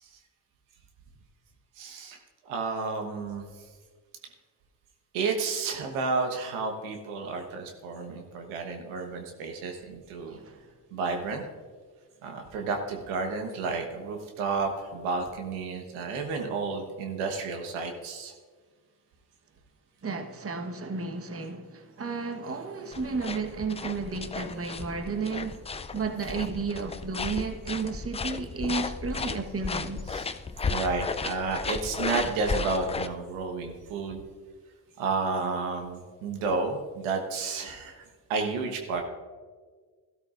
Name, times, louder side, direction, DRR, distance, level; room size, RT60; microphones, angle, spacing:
voice 1, 1.8-2.2 2.4-3.5 5.1-10.4 10.9-11.4 12.2-18.3 30.1-30.3 30.6-34.2 35.0-38.0 38.3-39.0, right 4 dB, 80° right, 1.3 m, -31 dB
voice 2, 10.3-10.6 20.0-25.6 25.9-30.0, right 4 dB, 30° right, 1.2 m, -33 dB
sound 1, 22.9-33.1, left 4 dB, 15° left, 0.3 m, -34 dB
13.5 x 12.5 x 2.5 m
hypercardioid pair, 50°, 48 cm